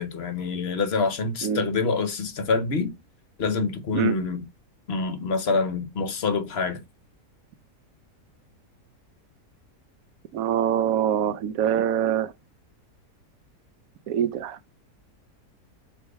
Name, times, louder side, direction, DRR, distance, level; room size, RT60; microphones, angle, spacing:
voice 1, 0.0-2.9 3.4-4.5 4.9-6.8, left 4 dB, 50° left, 0.8 m, -26 dB
voice 2, 10.3-12.3 14.1-14.6, right 9 dB, 70° right, 0.9 m, -24 dB
5.0 x 3.0 x 3.4 m
omnidirectional pair, 1.7 m